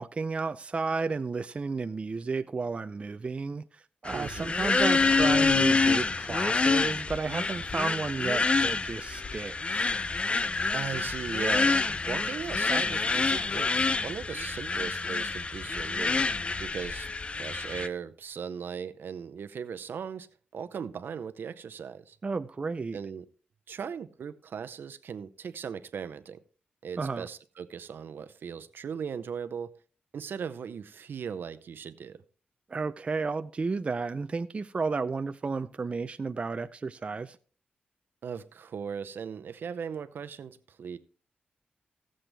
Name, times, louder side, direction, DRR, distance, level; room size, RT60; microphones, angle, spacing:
voice 1, 0.0-9.9 22.2-23.0 27.0-27.3 32.7-37.4, right 4 dB, 35° right, 0.4 m, -32 dB
sound 1, 4.0-17.9, left 3 dB, 30° left, 0.5 m, -27 dB
voice 2, 4.1-4.5 10.7-16.2 16.6-17.1 17.4-20.3 20.5-22.2 22.9-23.3 23.7-26.4 26.8-29.7 30.1-32.2 38.2-41.0, right 7 dB, 75° right, 0.7 m, -38 dB
16.0 x 7.5 x 3.4 m
wide cardioid pair, 115°, 4 cm